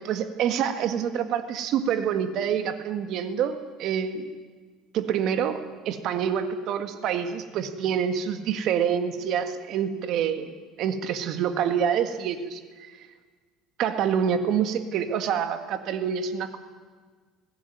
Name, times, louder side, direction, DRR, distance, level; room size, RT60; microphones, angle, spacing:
voice 1, 0.0-4.3 4.9-10.5 10.8-13.1 13.8-16.6, right 8 dB, 50° right, 9 dB, 1.7 m, -27 dB
21.0 x 16.5 x 9.4 m, 1.5 s
cardioid pair, 160°, 0 cm